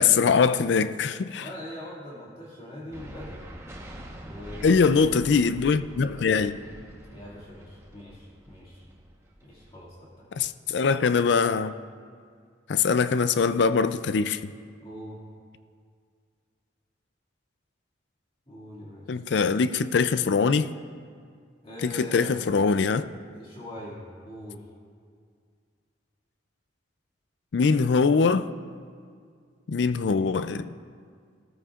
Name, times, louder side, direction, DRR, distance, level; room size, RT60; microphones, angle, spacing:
voice 1, 0.0-1.5 4.6-6.6 10.3-11.7 12.7-14.5 19.1-20.7 21.8-23.0 27.5-28.5 29.7-30.7, left 5 dB, 65° left, 0.4 m, -22 dB
voice 2, 1.4-3.5 4.2-5.2 7.1-8.9 9.4-10.3 14.8-15.2 18.5-19.6 21.6-22.5 23.3-24.6, left 1 dB, 30° left, 2.2 m, -42 dB
sound 1, 2.9-9.9, equal, 15° right, 1.1 m, -44 dB
17.0 x 14.0 x 2.4 m
head